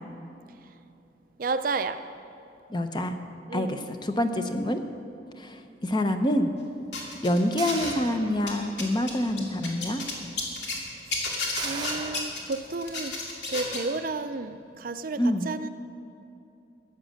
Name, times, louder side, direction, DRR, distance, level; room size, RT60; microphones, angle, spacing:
voice 1, 1.4-2.0 3.5-3.9 11.0-11.3 11.6-13.1 13.5-15.7, right 3 dB, 50° right, 10 dB, 0.5 m, -32 dB
voice 2, 2.7-3.2 3.5-4.8 5.4-6.5 7.2-10.0 15.2-15.5, left 1 dB, 25° left, 7 dB, 0.7 m, -26 dB
sound 1, 6.9-8.1 8.4-10.8 11.1-13.9, left 3 dB, 80° left, 2.4 m, -32 dB
sound 2, 7.6-8.8 9.3-9.4 11.6-12.2, right 4 dB, 25° right, 0.9 m, -37 dB
14.0 x 8.9 x 6.4 m, 2.8 s
head